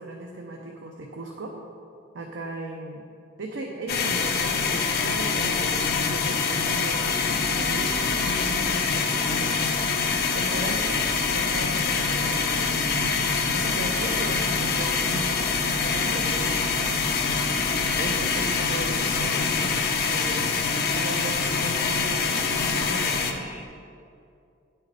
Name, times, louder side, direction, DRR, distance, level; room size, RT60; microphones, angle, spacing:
voice 1, 0.0-1.6 2.1-3.1 3.4-7.1 7.6-9.6 10.3-11.0 11.3-12.4 12.9-13.1 13.5-16.7 17.9-19.7 20.0-20.6 20.9-23.4, right 1 dB, 85° right, 1 dB, 0.6 m, -37 dB
sound 1, 3.9-23.3, left 5 dB, 55° left, 0.6 m, -25 dB
sound 2, 7.1-23.6, right 1 dB, 10° right, 0.4 m, -38 dB
9.7 x 4.5 x 4.8 m, 2.5 s
head